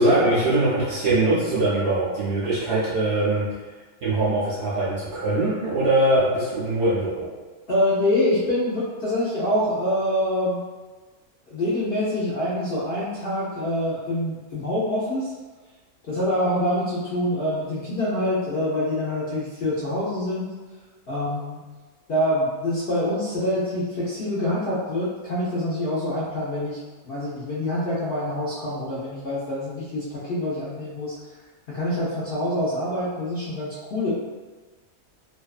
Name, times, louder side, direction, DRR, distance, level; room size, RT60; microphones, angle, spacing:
voice 1, 0.0-3.5 4.0-7.3, right 2 dB, 60° right, -8 dB, 0.7 m, -22 dB
voice 2, 7.7-10.6 11.5-15.3 16.0-20.5 21.1-21.7 22.1-31.4 31.7-34.1, left 1 dB, 60° left, -9 dB, 0.6 m, -25 dB
2.6 x 2.3 x 2.3 m, 1.3 s
omnidirectional pair, 1.5 m